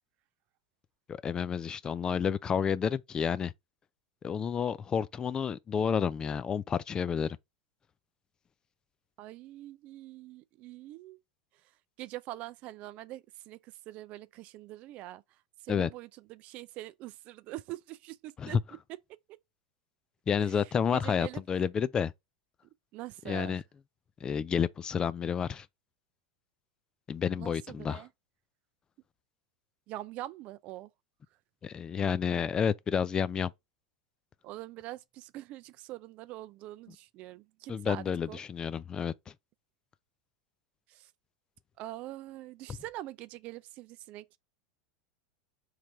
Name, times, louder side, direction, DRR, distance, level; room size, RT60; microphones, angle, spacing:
voice 1, 1.1-3.5 4.2-7.4 15.7-15.9 18.4-18.6 20.3-22.1 23.3-23.6 24.2-25.7 27.1-28.0 31.6-33.5 37.7-39.1, left 7 dB, 25° left, 0.3 m, -30 dB
voice 2, 9.2-11.2 12.0-15.2 15.6-18.6 18.9-19.0 19.3-19.4 20.4-21.4 22.9-23.6 27.4-28.1 29.9-30.9 34.4-38.4 40.9-41.1 41.8-44.3, right 16 dB, 45° right, 0.4 m, -44 dB
3.6 x 3.2 x 4.4 m
hypercardioid pair, 85°, 3 cm